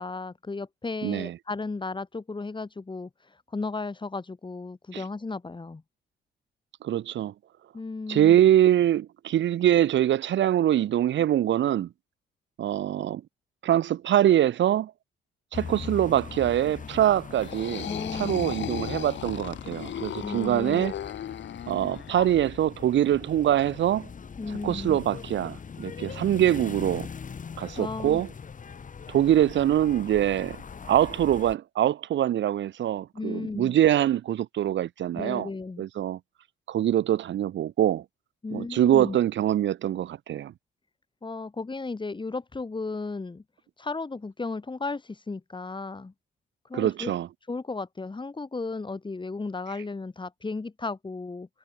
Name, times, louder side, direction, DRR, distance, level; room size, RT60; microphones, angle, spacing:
voice 1, 0.0-3.1 3.5-5.8 7.7-8.4 17.8-18.6 20.2-20.9 24.4-25.0 27.8-28.2 33.1-33.8 35.1-35.9 38.4-39.2 41.2-43.4 43.8-46.1 46.7-47.1 47.5-51.5, left 3 dB, 25° left, 6.8 m, -34 dB
voice 2, 1.0-1.3 4.9-5.0 6.8-7.3 8.1-11.9 12.6-13.2 13.6-14.9 15.5-17.9 18.1-20.9 21.7-24.1 24.6-27.1 27.6-28.3 29.1-30.6 30.9-35.5 35.8-36.2 36.7-38.0 38.5-40.5 46.7-47.3, right 11 dB, 70° right, 1.5 m, -24 dB
sound 1, 15.5-31.6, left 6 dB, 40° left, 4.0 m, -41 dB
sound 2, 17.3-22.1, left 10 dB, 65° left, 7.1 m, -36 dB
cardioid pair, 90°, 20 cm